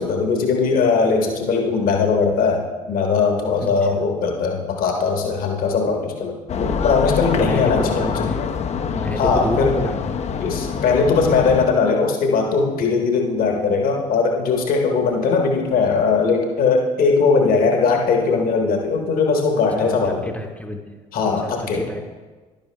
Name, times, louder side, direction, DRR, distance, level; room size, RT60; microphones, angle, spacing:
voice 1, 0.0-8.3 9.2-9.8 10.4-20.3 21.1-21.9, left 4 dB, 55° left, 2 dB, 1.2 m, -20 dB
voice 2, 3.6-3.9 7.4-8.4 8.9-10.0 19.8-21.0 21.4-22.1, left 1 dB, 10° left, 1 dB, 0.8 m, -29 dB
sound 1, 6.5-11.7, left 6 dB, 40° left, 0.5 m, -25 dB
11.0 x 10.5 x 2.2 m, 1.3 s
figure-of-eight pair, 50°, 18 cm